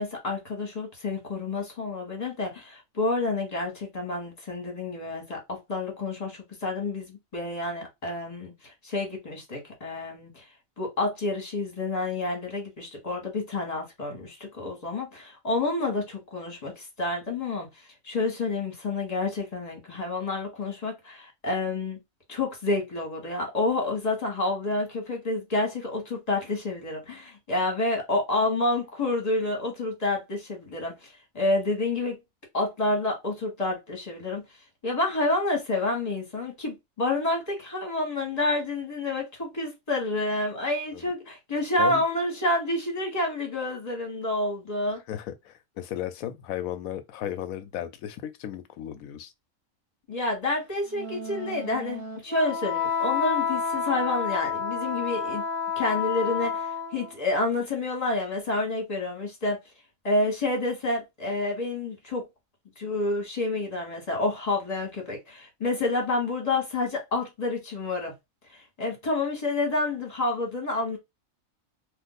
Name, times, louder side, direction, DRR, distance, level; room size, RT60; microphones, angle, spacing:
voice 1, 0.0-10.4 10.8-17.7 18.0-22.0 22.3-32.2 32.5-34.4 34.8-45.0 50.1-55.4 55.7-59.6 60.0-62.2 62.8-68.1 68.5-71.0, left 2 dB, 30° left, 1.3 m, -29 dB
voice 2, 45.1-49.3, left 11 dB, 80° left, 1.0 m, -35 dB
Wind instrument woodwind instrument, 50.9-57.1, left 6 dB, 65° right, 1.1 m, -30 dB
2.6 x 2.5 x 3.8 m
omnidirectional pair, 1.4 m